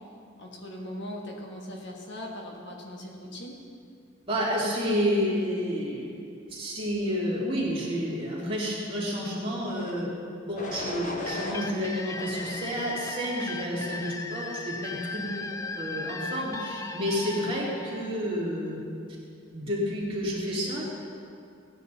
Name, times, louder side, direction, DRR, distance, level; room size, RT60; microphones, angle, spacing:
voice 1, 0.4-3.6 15.1-15.4, left 1 dB, 60° left, 0 dB, 1.5 m, -39 dB
voice 2, 4.3-6.1 6.5-10.1 10.5-15.2 15.8-18.8 19.5-20.8, equal, 25° right, -6 dB, 2.8 m, -30 dB
sound 1, 9.6-10.0 10.5-11.6 12.2-13.2 13.8-14.2, left 1 dB, 40° left, 1.1 m, -38 dB
sound 2, 11.3-18.8, left 3 dB, 15° left, 0.3 m, -38 dB
16.5 x 9.8 x 4.1 m, 2.4 s
head